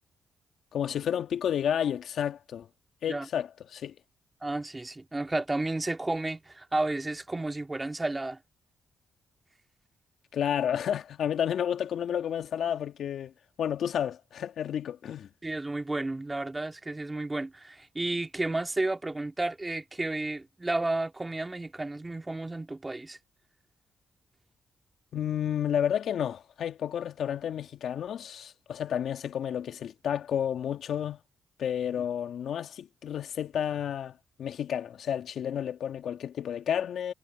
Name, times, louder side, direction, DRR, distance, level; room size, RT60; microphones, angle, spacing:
voice 1, 0.7-2.7 3.0-3.9 10.3-13.3 13.6-15.3 25.1-31.2 31.6-37.1, left 9 dB, 75° left, 2.0 m, -31 dB
voice 2, 4.4-8.4 15.4-23.2, right 2 dB, 20° right, 2.4 m, -32 dB
supercardioid pair, 50°, 0 cm